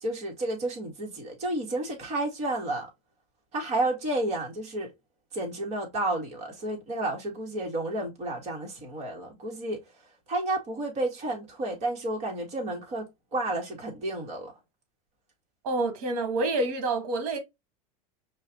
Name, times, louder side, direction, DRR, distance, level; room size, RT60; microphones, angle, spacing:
voice 1, 0.0-2.9 3.5-4.9 5.3-9.8 10.3-14.5, right 2 dB, 35° right, 1.9 m, -31 dB
voice 2, 15.6-17.4, right 2 dB, 75° right, 1.4 m, -27 dB
5.4 x 2.5 x 2.9 m
supercardioid pair, 135°, 19 cm